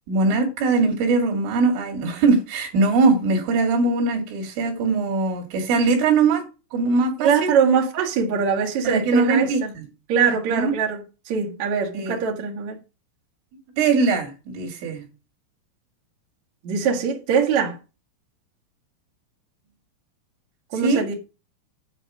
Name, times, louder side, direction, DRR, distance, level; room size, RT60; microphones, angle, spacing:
voice 1, 0.1-6.4 6.7-7.5 8.8-9.9 10.5-10.7 11.9-12.2 13.8-15.0 20.8-21.1, right 4 dB, 70° right, 4.6 m, -21 dB
voice 2, 7.2-9.7 10.1-12.8 16.6-17.8 20.7-21.1, right 6 dB, 55° right, 2.0 m, -22 dB
10.0 x 6.0 x 6.2 m
omnidirectional pair, 5.9 m